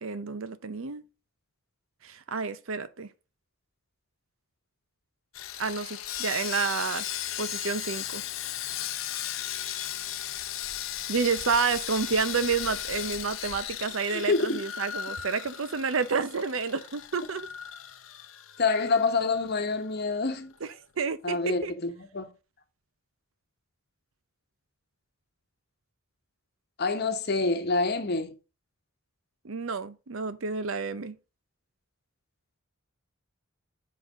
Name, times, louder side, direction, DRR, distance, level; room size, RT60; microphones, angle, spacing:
voice 1, 0.0-1.0 2.0-3.1 5.6-7.0 7.4-8.2 11.1-17.5 20.6-21.7 29.4-31.2, right 5 dB, 70° right, 0.7 m, -30 dB
Sawing, 5.3-19.6 19.8-20.0 20.5-20.6, left 11 dB, 70° left, 0.7 m, -36 dB
voice 2, 14.1-14.6 18.6-20.5 21.2-22.3 26.8-28.4, left 3 dB, 50° left, 1.1 m, -27 dB
7.6 x 4.1 x 4.9 m
head